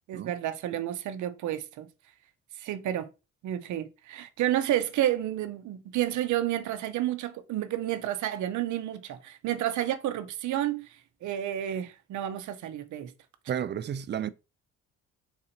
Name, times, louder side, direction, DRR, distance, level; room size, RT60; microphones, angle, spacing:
voice 1, 0.1-1.9 2.6-3.1 3.4-10.9 11.2-13.1, right 12 dB, 75° right, 0.6 m, -30 dB
voice 2, 13.5-14.3, right 9 dB, 35° right, 0.4 m, -32 dB
4.1 x 2.6 x 4.3 m
cardioid pair, 90°, 30 cm